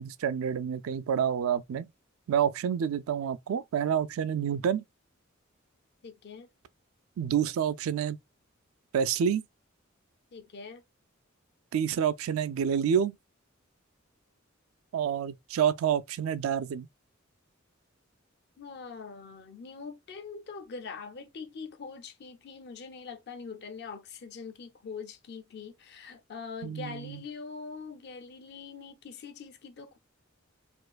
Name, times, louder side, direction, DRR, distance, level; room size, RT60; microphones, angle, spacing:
voice 1, 0.0-1.9 2.3-4.8 7.2-8.2 8.9-9.4 11.7-13.2 14.9-16.9 26.6-27.2, right 8 dB, 80° right, 0.3 m, -28 dB
voice 2, 6.0-6.5 10.3-10.8 18.6-30.0, left 5 dB, 55° left, 0.5 m, -43 dB
4.3 x 2.5 x 2.2 m
head